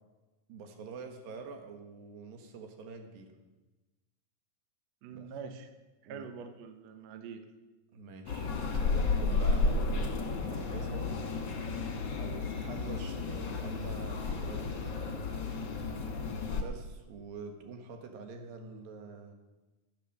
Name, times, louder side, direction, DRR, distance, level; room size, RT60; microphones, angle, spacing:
voice 1, 0.5-3.4 5.1-5.3 6.0-6.2 7.9-11.4 12.2-15.2 16.5-19.3, right 4 dB, 85° right, 5 dB, 3.1 m, -46 dB
voice 2, 5.0-5.7 6.0-7.5, right 6 dB, 70° right, 8 dB, 1.8 m, -44 dB
sound 1, 8.3-16.6, left 3 dB, 50° left, 1.5 m, -32 dB
13.0 x 8.9 x 6.6 m, 1.1 s
omnidirectional pair, 4.0 m